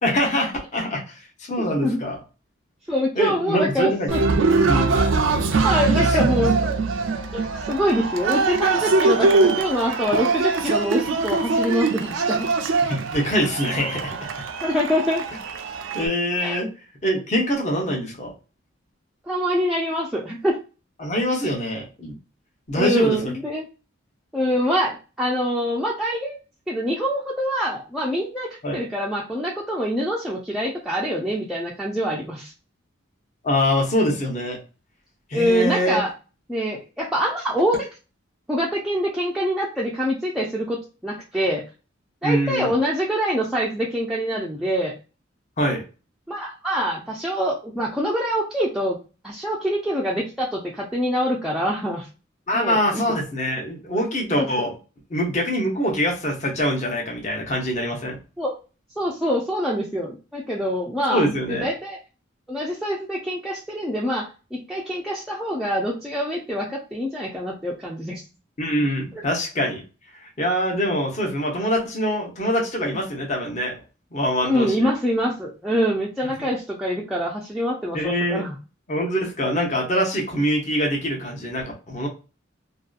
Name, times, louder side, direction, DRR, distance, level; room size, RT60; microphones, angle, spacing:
voice 1, 0.0-2.2 3.2-4.1 4.6-4.9 5.9-6.7 12.9-14.3 15.9-16.7 17.0-18.3 21.0-22.1 22.7-23.3 28.6-28.8 33.4-34.6 35.3-36.0 42.2-42.7 45.6-45.8 52.5-54.7 55.1-58.2 61.1-61.7 68.6-69.8 70.1-73.7 74.1-74.9 76.4-76.5 77.9-78.5 78.9-82.1, equal, 40° left, 0 dB, 0.8 m, -24 dB
voice 2, 1.6-2.0 2.9-4.5 5.6-6.5 7.3-12.5 14.6-15.2 16.4-16.6 19.3-20.6 22.7-23.7 24.3-26.4 26.7-32.5 35.3-36.1 36.5-37.9 38.5-41.6 42.2-44.9 46.3-49.0 49.2-52.1 52.5-53.1 54.4-54.5 58.4-58.6 59.0-62.0 62.5-68.2 69.1-69.2 74.4-78.6, equal, ahead, -4 dB, 0.4 m, -25 dB
Cheering, 4.1-16.1, right 3 dB, 80° right, 0.4 m, -22 dB
2.6 x 2.2 x 2.4 m, 0.33 s
head